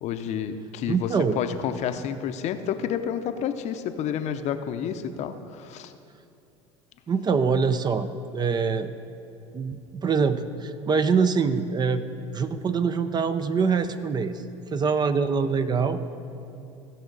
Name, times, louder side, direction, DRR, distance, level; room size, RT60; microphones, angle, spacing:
voice 1, 0.0-5.9, left 8 dB, 50° left, 9 dB, 0.6 m, -30 dB
voice 2, 0.9-1.4 7.1-8.9 9.5-12.0 12.3-14.4 14.7-16.0, right 5 dB, 30° right, 11 dB, 0.5 m, -24 dB
16.5 x 5.9 x 4.0 m, 2.6 s
hypercardioid pair, 85°, 14 cm